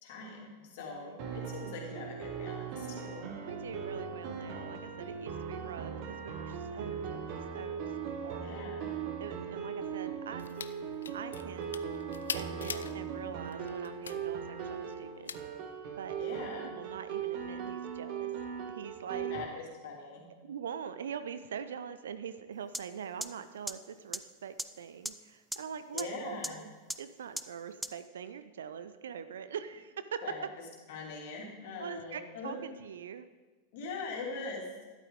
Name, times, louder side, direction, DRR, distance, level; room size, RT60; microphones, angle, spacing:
voice 1, 0.0-3.4 8.3-8.9 16.2-16.7 19.3-20.3 25.9-26.6 30.2-30.5 30.9-32.5 33.7-34.7, left 4 dB, 50° left, -1 dB, 2.8 m, -42 dB
voice 2, 0.9-1.3 3.4-7.9 8.2-8.5 9.2-10.4 11.1-11.8 12.3-15.4 16.0-16.1 16.6-19.3 20.4-30.2 31.8-33.3, right 8 dB, 65° right, 12 dB, 0.6 m, -43 dB
sound 1, 1.2-19.5, right 7 dB, 45° right, 1.3 m, -39 dB
sound 2, 10.4-10.7 11.0-12.9 13.4-14.2 15.3-15.4, left 7 dB, 70° left, 0.4 m, -40 dB
sound 3, 22.7-22.8 23.2-23.3 23.7-23.8 24.1-24.2 24.6-24.7 25.1-25.2 25.5-25.6 26.0-26.1 26.4-26.5 26.9-27.0 27.4-27.5 27.8-27.9, right 1 dB, 5° right, 0.4 m, -34 dB
12.5 x 11.0 x 3.7 m, 1.3 s
figure-of-eight pair, 90°, 0 cm